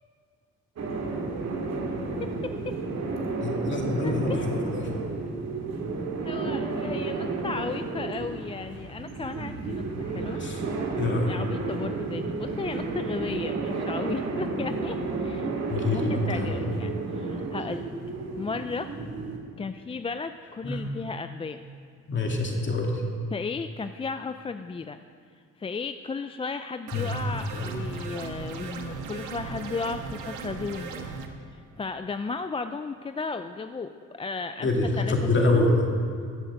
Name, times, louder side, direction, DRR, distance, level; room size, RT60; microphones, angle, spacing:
sound 1, 0.8-19.4, right 3 dB, 60° right, 2.1 m, -32 dB
voice 1, 2.2-2.7 4.0-4.1 6.3-10.4 11.3-15.5 15.9-17.8 18.4-18.9 19.6-21.6 23.3-25.0 25.6-31.1 31.5-34.7 35.0-35.6, left 4 dB, 20° left, 9 dB, 0.4 m, -35 dB
voice 2, 3.4-5.0 10.3-10.6 11.0-11.3 15.7-16.5 20.6-20.8 22.1-23.0 26.9-27.2 27.5-27.7 34.6-35.9, left 2 dB, 40° left, 1 dB, 2.4 m, -26 dB
sound 2, 26.9-31.3, right 4 dB, 90° right, 1.3 m, -37 dB
13.0 x 7.9 x 7.7 m, 2.3 s
cardioid pair, 90°, 30 cm